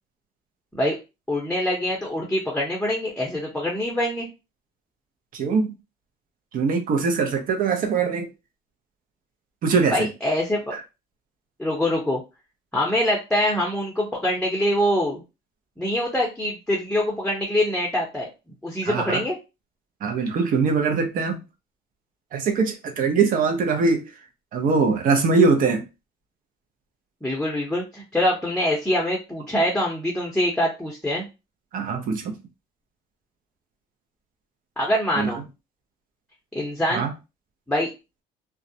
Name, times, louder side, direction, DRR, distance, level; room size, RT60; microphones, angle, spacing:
voice 1, 1.3-4.3 9.9-10.7 11.6-12.2 12.7-15.2 15.8-18.3 18.6-19.4 27.2-31.2 34.8-35.4 36.5-37.0 37.7-37.9, left 1 dB, 5° left, 0.7 m, -24 dB
voice 2, 5.3-5.7 6.5-8.3 9.6-10.1 18.8-19.2 20.0-21.4 22.3-24.1 24.5-25.8 31.7-32.4 35.2-35.3 36.9-37.1, right 4 dB, 55° right, 0.6 m, -22 dB
2.3 x 2.0 x 2.7 m
cardioid pair, 110°, 17 cm